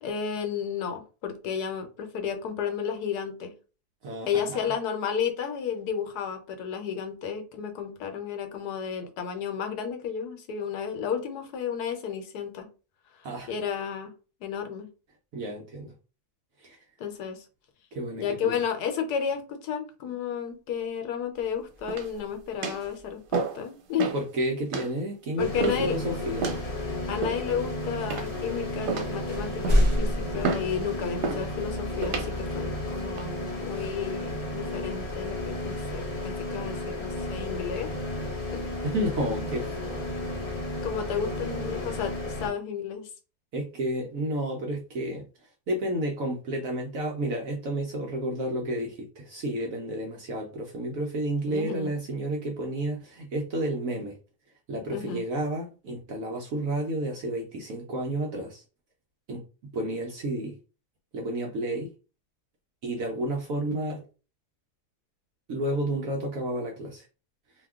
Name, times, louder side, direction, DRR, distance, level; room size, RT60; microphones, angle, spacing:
voice 1, 0.0-3.5 4.3-12.7 13.2-14.1 14.4-14.9 17.0-17.4 18.2-24.1 25.4-26.0 27.1-37.9 38.5-38.6 40.8-43.1 51.5-51.9 54.9-55.2, left 7 dB, 75° left, 6 dB, 1.2 m, -32 dB
voice 2, 4.0-4.6 13.2-13.5 15.3-15.9 16.6-16.8 17.9-18.5 24.1-26.5 38.8-40.2 43.5-45.3 45.7-54.2 54.7-58.6 59.3-60.6 61.1-61.9 62.8-64.0 65.5-67.0, right 1 dB, 65° right, 0 dB, 0.9 m, -31 dB
sound 1, 21.3-23.4 25.5-25.7 26.5-27.3 28.2-28.3 28.7-31.5 32.1-32.2 34.8-36.9, equal, 35° right, 0.4 m, -31 dB
sound 2, 21.9-22.2 22.6-22.9 23.3-23.6 24.0-24.2 24.7-24.9 25.6-25.9 26.4-26.6 27.2-27.6 28.1-28.5 28.9-29.2 29.6-29.9 30.4-30.7 31.2-31.5 32.0-32.3 32.9-33.2, right 5 dB, 90° right, 1.3 m, -31 dB
sound 3, 25.4-42.5, left 1 dB, 35° left, 0.6 m, -33 dB
2.8 x 2.2 x 3.4 m, 0.34 s
omnidirectional pair, 1.7 m